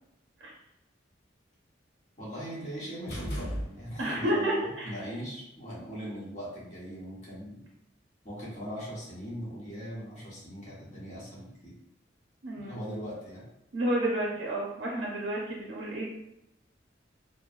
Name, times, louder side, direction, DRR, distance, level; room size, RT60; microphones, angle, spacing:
voice 1, 2.2-7.6 8.2-11.7 12.5-13.4, equal, 40° left, -7 dB, 1.1 m, -40 dB
sound 1, 3.1-4.3, equal, 65° left, 0.7 m, -36 dB
voice 2, 4.0-5.0 12.4-12.8 13.7-16.1, right 1 dB, 85° right, -3 dB, 0.5 m, -30 dB
3.1 x 2.0 x 2.4 m, 0.85 s
head